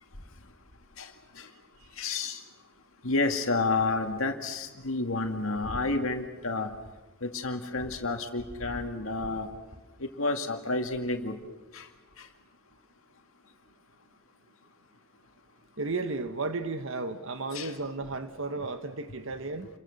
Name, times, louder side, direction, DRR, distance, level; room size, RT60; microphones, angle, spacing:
voice 1, 1.0-1.5 2.0-2.4 3.0-6.7 7.2-9.5 10.0-11.4 11.7-11.9 12.2-12.3 17.5-17.7, left 3 dB, 70° left, 2.3 m, -30 dB
voice 2, 15.8-19.7, right 3 dB, 65° right, 1.3 m, -33 dB
30.0 x 23.0 x 6.6 m
head